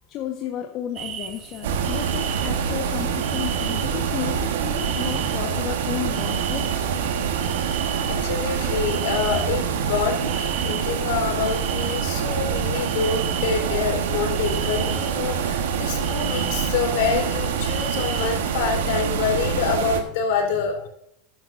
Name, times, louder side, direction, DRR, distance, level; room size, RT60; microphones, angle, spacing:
voice 1, 0.1-6.8, left 10 dB, 50° left, 3 dB, 1.3 m, -33 dB
sound 1, 0.9-19.2, right 9 dB, 40° right, 1.4 m, -36 dB
sound 2, 1.6-20.0, right 7 dB, 75° right, 1.4 m, -25 dB
voice 2, 7.7-20.9, left 6 dB, 65° left, 2 dB, 3.8 m, -26 dB
14.0 x 11.0 x 2.7 m, 0.76 s
hypercardioid pair, 95°, 0 cm